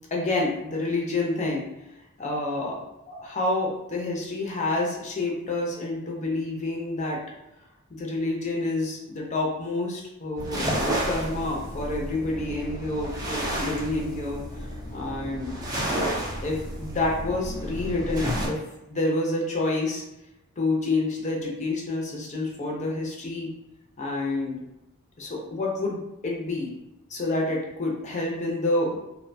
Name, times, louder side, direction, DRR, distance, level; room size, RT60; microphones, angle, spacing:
voice 1, 0.1-1.6 2.2-7.2 7.9-10.7 11.0-14.7 14.9-15.6 16.4-18.6 18.9-20.0 20.6-23.5 24.0-24.6 25.2-26.7 27.1-29.0, left 2 dB, 35° left, -2 dB, 0.6 m, -28 dB
sound 1, 10.4-18.5, right 1 dB, 20° right, 0.5 m, -31 dB
2.6 x 2.1 x 2.6 m, 0.92 s
head